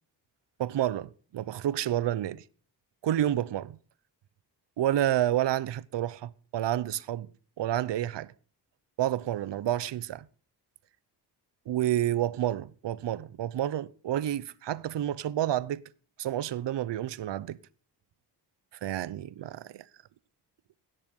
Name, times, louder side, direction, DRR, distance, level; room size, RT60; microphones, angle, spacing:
voice 1, 0.6-2.4 3.0-3.8 4.8-7.3 7.6-8.3 9.0-10.3 11.7-15.8 16.2-17.6 18.8-19.8, right 12 dB, 85° right, 0.9 m, -29 dB
17.0 x 10.5 x 5.4 m
wide cardioid pair, 175°, 42 cm